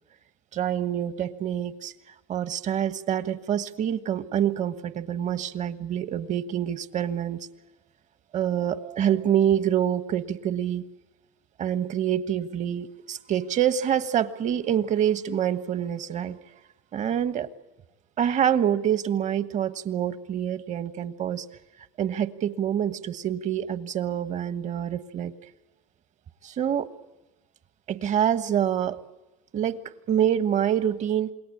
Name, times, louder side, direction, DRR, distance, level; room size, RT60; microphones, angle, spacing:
voice 1, 0.5-1.9 2.3-7.4 8.3-10.8 11.6-16.4 16.9-17.5 18.2-21.4 22.0-25.3 26.4-26.9 27.9-29.0 29.5-29.8 30.1-31.3, right 9 dB, 45° right, 13 dB, 1.4 m, -26 dB
28.0 x 21.0 x 8.7 m, 1.1 s
supercardioid pair, 100°, 17 cm